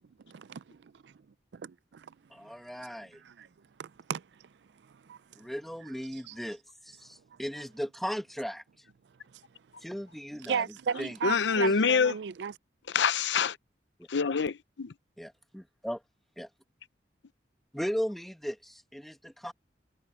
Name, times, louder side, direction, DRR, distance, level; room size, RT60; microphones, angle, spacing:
voice 1, 1.5-2.1 2.8-2.9 3.2-3.5 3.8-4.5 4.8-5.2 6.3-6.4 7.3-7.4 9.3-9.4 10.5-12.5, right 6 dB, 70° right, 0.4 m, -35 dB
voice 2, 2.3-3.2 5.4-8.9 9.8-10.6 11.0-11.2 14.0-14.1 15.2-16.0 16.4-16.5 17.7-19.5, equal, ahead, 1.1 m, -37 dB
voice 3, 11.2-12.1 12.9-13.6 14.1-14.9, left 5 dB, 85° left, 0.6 m, -26 dB
head